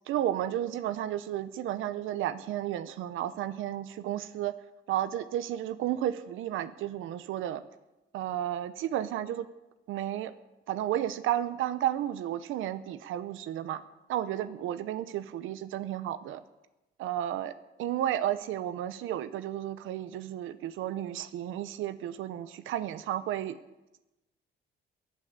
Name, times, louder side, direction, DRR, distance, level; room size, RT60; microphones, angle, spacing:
voice 1, 0.1-4.5 4.9-7.6 8.1-9.5 9.9-10.3 10.7-13.8 14.1-16.4 17.0-17.5 17.8-23.6, right 12 dB, 85° right, 13 dB, 0.8 m, -32 dB
15.0 x 8.9 x 9.4 m, 1.0 s
cardioid pair, 90°, 20 cm